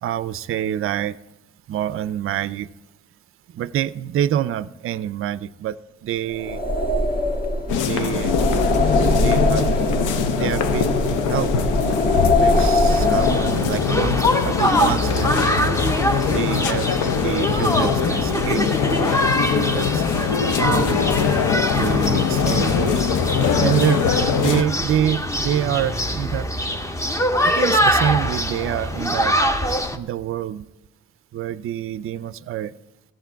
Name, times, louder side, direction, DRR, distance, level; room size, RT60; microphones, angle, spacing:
voice 1, 0.0-1.2 1.7-2.7 3.5-5.8 6.0-6.6 7.8-8.4 9.2-11.5 12.4-15.3 16.3-16.9 17.2-18.7 19.5-20.0 20.5-21.0 21.8-23.1 23.6-24.0 24.3-26.5 27.4-29.4 29.9-30.7 31.3-32.7, right 10 dB, 45° right, 16 dB, 0.4 m, -26 dB
sound 1, 6.3-13.9, left 1 dB, 30° left, 1.3 m, -21 dB
sound 2, 7.7-24.6, left 7 dB, 80° left, 0.7 m, -22 dB
sound 3, 12.9-30.0, equal, 10° left, 0.7 m, -23 dB
14.5 x 7.7 x 4.5 m, 1.0 s
cardioid pair, 90°, 30 cm